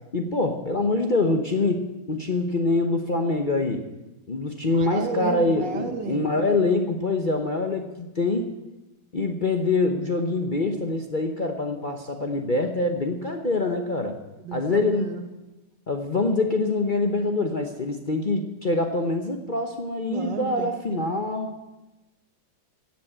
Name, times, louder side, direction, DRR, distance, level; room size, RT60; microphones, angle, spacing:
voice 1, 0.1-3.8 4.3-8.5 9.1-14.2 14.5-15.1 15.9-21.5, left 2 dB, 35° left, 3 dB, 0.8 m, -25 dB
voice 2, 4.7-6.7 14.4-15.3 20.0-21.0, right 5 dB, 75° right, 6 dB, 2.1 m, -33 dB
15.5 x 7.4 x 8.7 m, 1.0 s
omnidirectional pair, 2.0 m